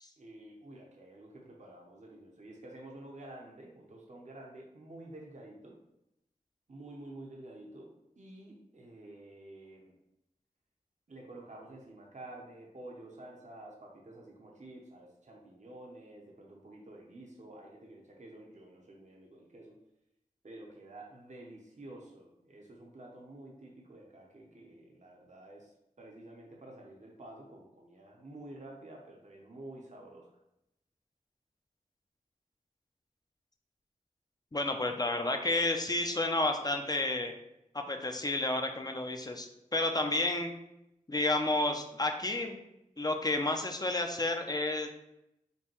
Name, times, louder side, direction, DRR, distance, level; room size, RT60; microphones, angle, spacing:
voice 1, 0.2-5.8 6.7-9.9 11.1-19.8 20.4-30.4, right 1 dB, 60° right, -1 dB, 0.7 m, -50 dB
voice 2, 34.5-37.3 37.7-40.5 41.1-42.6 43.0-44.9, left 2 dB, 30° left, 4 dB, 0.5 m, -31 dB
5.3 x 2.2 x 3.0 m, 0.85 s
wide cardioid pair, 45°, 14 cm